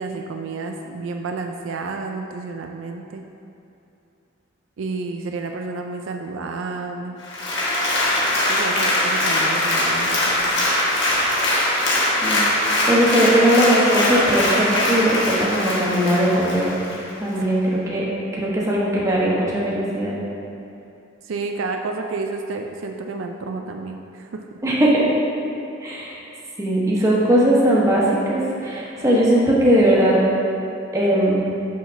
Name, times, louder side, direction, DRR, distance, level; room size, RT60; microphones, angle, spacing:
voice 1, 0.0-3.2 4.8-7.2 8.5-10.7 16.9-17.0 17.5-17.7 21.2-24.6, right 3 dB, 75° right, 3 dB, 0.4 m, -30 dB
Applause, 7.2-17.0 17.4-17.5, left 1 dB, 60° left, 1.6 m, -21 dB
voice 2, 12.9-16.7 17.2-18.0 18.3-20.2 24.6-25.0 25.8-26.1 26.6-30.2 30.9-31.4, right 1 dB, 15° right, -6 dB, 1.2 m, -19 dB
6.4 x 4.1 x 5.7 m, 2.7 s
head